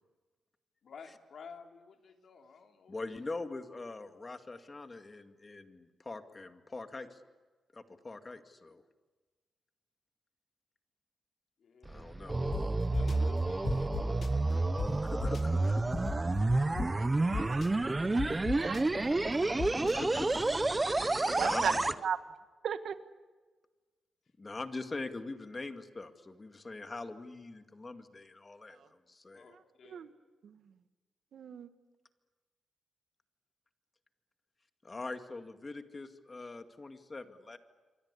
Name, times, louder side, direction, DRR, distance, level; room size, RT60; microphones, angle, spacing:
voice 1, 0.8-3.3 11.6-12.1 12.4-15.0 18.9-19.7 29.3-30.1, left 5 dB, 65° left, 4 dB, 3.1 m, -53 dB
voice 2, 2.9-7.2 7.7-8.8 11.8-12.4 14.9-15.8 19.8-20.4 21.4-21.8 24.4-29.5 34.8-37.6, left 3 dB, 25° left, 8 dB, 2.1 m, -43 dB
sound 1, 11.8-21.9, right 2 dB, 20° right, 1.0 m, -30 dB
sound 2, 12.5-12.6 12.9-13.1 13.6-14.3 14.8-14.9 15.2-15.4 15.9-16.9 17.3-17.7 18.2-18.8 19.6-19.9, left 5 dB, 50° left, 1.6 m, -35 dB
voice 3, 16.6-18.9 21.3-22.2 22.6-23.0 28.7-28.9 29.5-30.1 30.4-30.7 31.3-31.7, right 7 dB, 75° right, 11 dB, 1.5 m, -39 dB
27.5 x 24.0 x 8.4 m, 1.3 s
cardioid pair, 105°, 0 cm